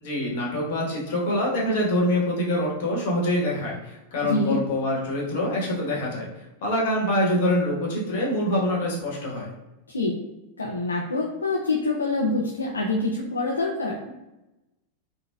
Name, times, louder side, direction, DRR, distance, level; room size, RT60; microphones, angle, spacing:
voice 1, 0.0-6.3 6.6-9.5, left 1 dB, 50° left, -3 dB, 1.1 m, -25 dB
voice 2, 4.2-4.6 9.9-10.2 10.6-14.1, left 2 dB, 75° left, -2 dB, 0.4 m, -26 dB
3.9 x 2.1 x 2.3 m, 0.98 s
figure-of-eight pair, 90°, 0 cm